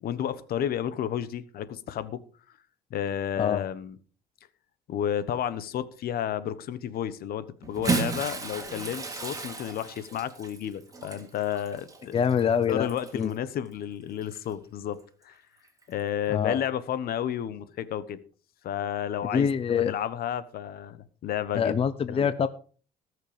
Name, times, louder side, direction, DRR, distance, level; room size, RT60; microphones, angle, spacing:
voice 1, 0.0-2.2 2.9-4.0 4.9-12.2 12.7-15.0 15.2-15.4 15.9-18.2 18.6-21.7 22.1-22.3, left 10 dB, 65° left, 15 dB, 1.2 m, -32 dB
Bathtub (filling or washing) / Splash splatter, 7.6-13.3 14.2-14.4 15.8-15.9, right 4 dB, 20° right, 2.9 m, -34 dB
voice 2, 12.1-12.9 13.1-13.3 16.3-16.6 19.3-19.9 21.5-22.5, left 7 dB, 35° left, 14 dB, 0.7 m, -25 dB
19.0 x 6.6 x 5.1 m, 0.41 s
cardioid pair, 110°, 17 cm